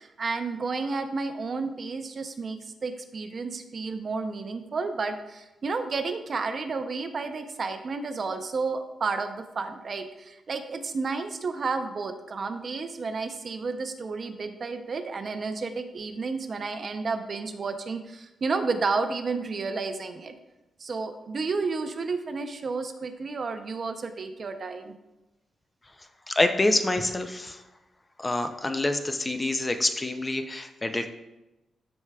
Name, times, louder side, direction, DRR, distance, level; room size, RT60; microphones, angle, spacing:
voice 1, 0.0-20.3 20.8-24.9, right 4 dB, 40° right, 7 dB, 0.6 m, -31 dB
voice 2, 26.3-27.6 28.2-31.1, left 2 dB, 20° left, 7 dB, 0.4 m, -26 dB
13.0 x 4.7 x 2.3 m, 0.99 s
wide cardioid pair, 145°, 0 cm